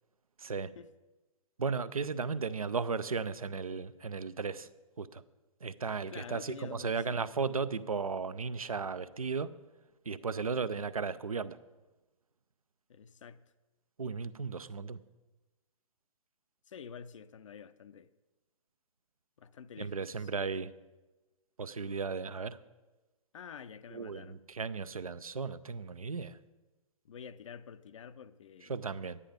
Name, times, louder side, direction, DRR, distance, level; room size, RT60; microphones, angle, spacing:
voice 1, 0.4-0.7 1.6-4.7 5.0-5.2 5.6-9.5 10.1-11.6 14.0-15.0 19.8-20.7 21.6-22.6 23.9-26.4 28.7-29.2, right 5 dB, 85° right, 0.6 m, -35 dB
voice 2, 6.1-7.2 12.9-13.4 16.7-18.1 19.4-20.3 23.3-24.4 27.0-28.8, left 7 dB, 60° left, 0.6 m, -48 dB
10.5 x 9.8 x 5.1 m
figure-of-eight pair, 120°, 18 cm